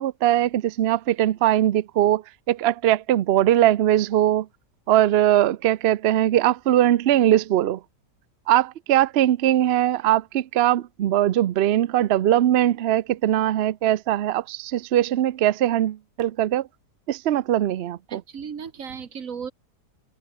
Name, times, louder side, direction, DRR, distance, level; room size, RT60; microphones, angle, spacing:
voice 1, 0.0-2.2 2.5-4.5 4.9-7.8 8.5-16.7 17.1-18.2, right 12 dB, 75° right, 0.5 m, -21 dB
voice 2, 18.1-19.5, right 6 dB, 55° right, 1.9 m, -35 dB
open air
omnidirectional pair, 1.8 m